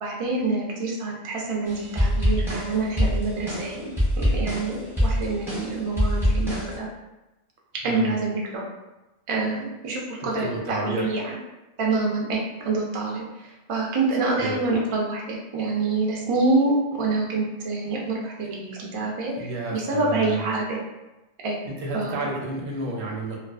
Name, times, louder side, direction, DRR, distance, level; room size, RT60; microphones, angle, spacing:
voice 1, 0.0-6.9 7.8-8.6 9.3-11.3 11.8-20.8 21.4-21.6 21.9-22.3, right 3 dB, 60° right, -2 dB, 0.3 m, -26 dB
sound 1, 1.7-6.8, equal, 5° right, 0.5 m, -24 dB
voice 2, 7.8-8.1 10.2-11.2 14.2-14.6 19.4-20.5 21.7-23.4, right 2 dB, 80° right, -2 dB, 0.9 m, -31 dB
2.3 x 2.3 x 2.3 m, 1.0 s
omnidirectional pair, 1.1 m